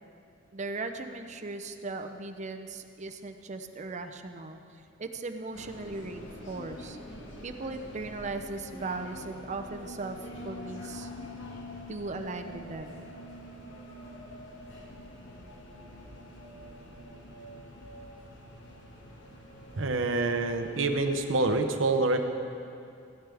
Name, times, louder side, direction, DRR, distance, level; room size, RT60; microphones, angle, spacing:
voice 1, 0.5-4.6 5.0-7.0 7.4-10.2 10.4-11.1 11.9-13.1, right 3 dB, 40° right, 7 dB, 0.6 m, -38 dB
sound 1, 5.5-21.6, left 1 dB, 70° left, 1.5 m, -45 dB
voice 2, 19.8-22.2, right 3 dB, 85° right, 7 dB, 0.8 m, -26 dB
15.5 x 12.5 x 3.5 m, 2.4 s
head